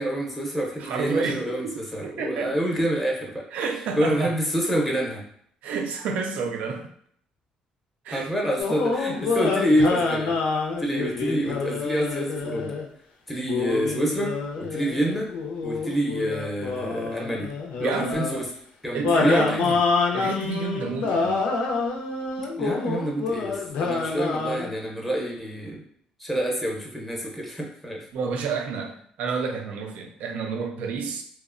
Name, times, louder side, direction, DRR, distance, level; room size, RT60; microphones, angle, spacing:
voice 1, 0.0-3.4 4.0-5.2 8.1-10.4 10.8-12.8 13.3-15.3 15.6-17.5 17.8-18.5 18.8-19.6 22.6-25.8 26.2-28.1, right 1 dB, ahead, -2 dB, 0.6 m, -27 dB
voice 2, 0.8-2.5 3.5-4.4 5.6-6.9 8.0-8.3 17.8-18.2 18.9-19.8 20.1-21.4 28.1-31.2, right 5 dB, 75° right, 4 dB, 0.4 m, -30 dB
sound 1, 8.6-12.9 13.5-18.4 19.0-24.7, left 4 dB, 80° left, 0.4 m, -27 dB
2.8 x 2.0 x 2.4 m, 0.64 s
cardioid pair, 115°, 3 cm